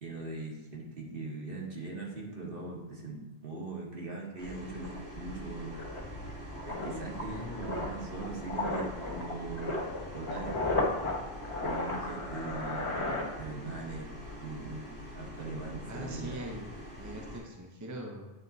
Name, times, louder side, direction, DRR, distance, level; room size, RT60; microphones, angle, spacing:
voice 1, 0.0-5.8 6.6-9.8 10.1-10.6 11.6-13.0 13.4-16.4, right 3 dB, 60° right, -2 dB, 1.6 m, -40 dB
sound 1, 4.4-4.5 4.8-13.9 14.1-14.4, left 2 dB, 30° left, 1.2 m, -35 dB
sound 2, 4.4-17.4, equal, 85° right, 2.1 m, -45 dB
voice 2, 15.9-18.3, right 1 dB, 20° right, 0 dB, 0.8 m, -42 dB
9.5 x 3.6 x 4.0 m, 1.2 s
omnidirectional pair, 1.0 m